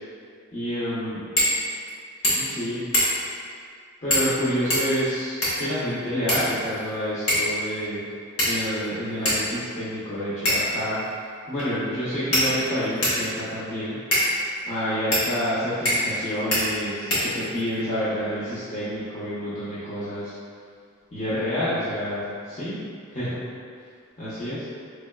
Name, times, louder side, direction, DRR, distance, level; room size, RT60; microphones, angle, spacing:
voice 1, 0.5-1.2 2.3-2.8 4.0-8.0 8.4-11.0 11.5-14.0 14.7-20.3 21.1-22.8 23.1-23.4 24.2-24.6, equal, 30° left, -14 dB, 0.7 m, -28 dB
sound 1, 1.3-1.6 1.9-2.0 2.2-2.6 2.9-3.3 4.1-4.3 4.7-5.7 6.3-6.9 7.3-7.5 8.4-8.8 9.2-9.4 10.4-10.8 11.6-11.7 12.3-13.2 14.1-14.3 15.1-15.3 15.8-16.2 16.5-16.6 17.1-17.7, equal, 70° left, 1.2 m, -23 dB
3.9 x 3.3 x 2.2 m, 2.2 s
head